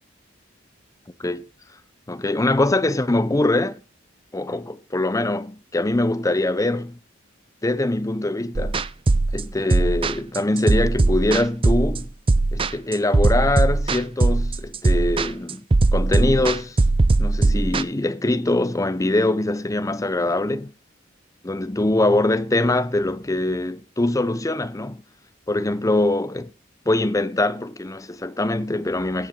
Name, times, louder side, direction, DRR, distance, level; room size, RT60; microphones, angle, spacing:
voice 1, 2.1-3.8 4.3-7.0 7.6-8.8 9.3-12.1 12.5-15.7 15.9-16.8 17.2-20.7 21.4-25.0 25.5-26.5 26.9-29.3, left 2 dB, 15° left, 0.7 m, -23 dB
sound 1, 8.5-17.8, right 2 dB, 25° right, 0.5 m, -19 dB
16.5 x 7.2 x 3.8 m
head